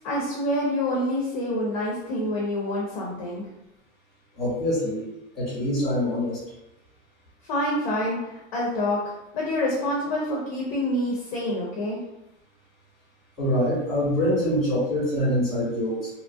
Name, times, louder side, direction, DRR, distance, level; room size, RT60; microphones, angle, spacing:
voice 1, 0.0-3.4 7.5-9.0 9.3-12.0, left 1 dB, 30° left, -4 dB, 0.4 m, -27 dB
voice 2, 4.4-5.0 5.3-6.4 13.4-16.1, equal, ahead, -9 dB, 1.0 m, -24 dB
2.8 x 2.3 x 2.6 m, 0.90 s
supercardioid pair, 170°, 36 cm